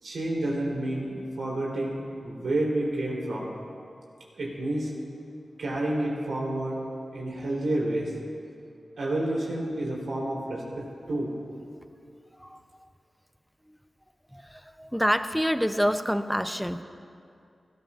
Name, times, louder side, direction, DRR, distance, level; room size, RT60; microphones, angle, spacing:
voice 1, 0.0-3.5 4.4-4.9 5.6-6.8 7.1-8.1 9.0-10.6 11.1-11.3, right 1 dB, 85° right, -5 dB, 3.5 m, -29 dB
voice 2, 14.8-16.8, equal, ahead, 10 dB, 0.6 m, -26 dB
20.0 x 13.5 x 2.5 m, 2.4 s
cardioid pair, 50°, 0 cm